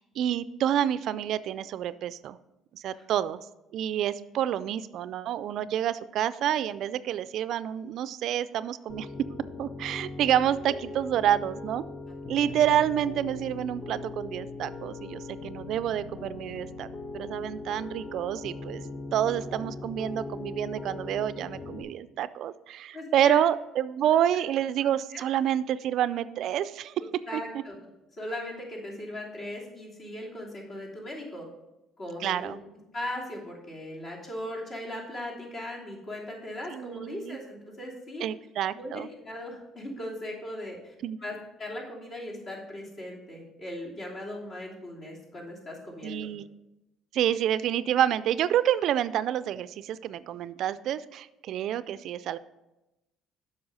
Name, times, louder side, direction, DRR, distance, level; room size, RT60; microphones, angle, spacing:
voice 1, 0.0-2.4 2.7-3.4 3.7-9.1 9.6-11.8 12.3-16.9 17.1-18.8 19.1-26.9 27.3-27.4 32.2-32.6 36.7-37.4 38.2-39.1 41.0-41.2 46.0-46.5 47.1-52.4, right 10 dB, 65° right, 15 dB, 0.3 m, -28 dB
Piano, 8.9-21.8, left 3 dB, 35° left, 0.9 m, -40 dB
voice 2, 22.9-23.4 25.1-25.2 27.3-27.7 28.2-31.5 32.0-32.5 32.9-38.2 38.7-40.9 41.2-46.3, left 1 dB, 50° left, -3 dB, 2.9 m, -38 dB
7.8 x 5.6 x 5.4 m, 0.96 s
supercardioid pair, 80°, 0 cm